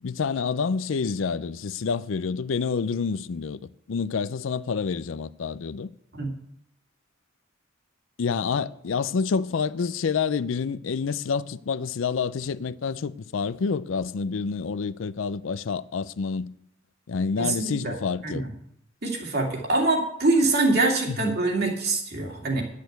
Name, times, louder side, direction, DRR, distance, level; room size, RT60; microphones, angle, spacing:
voice 1, 0.0-5.9 8.2-16.5 17.1-18.4 21.1-21.4, left 5 dB, 80° left, 0.5 m, -28 dB
voice 2, 17.4-18.0 18.2-18.5 19.0-22.6, right 2 dB, 55° right, 2.4 m, -24 dB
10.5 x 6.6 x 7.9 m
head